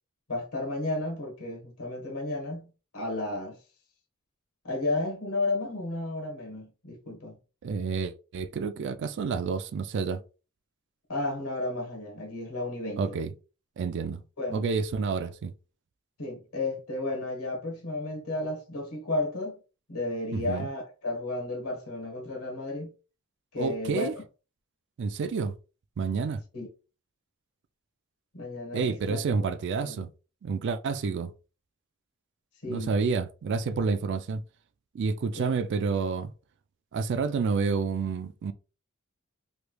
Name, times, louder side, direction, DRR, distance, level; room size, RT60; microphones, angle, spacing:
voice 1, 0.3-3.6 4.6-7.4 11.1-13.0 14.4-14.7 16.2-19.6 19.9-22.9 23.5-24.1 26.5-26.7 28.3-29.5 29.8-30.0 32.6-33.0 35.3-35.5, left 2 dB, 85° left, 1.3 m, -33 dB
voice 2, 7.6-10.2 13.0-13.3 13.8-14.2 14.5-15.5 20.3-20.7 23.6-24.1 25.0-25.5 26.0-26.4 28.7-30.1 30.4-31.3 32.7-34.4 34.9-36.3 36.9-38.5, right 5 dB, 55° right, 0.3 m, -29 dB
3.2 x 3.1 x 2.2 m
head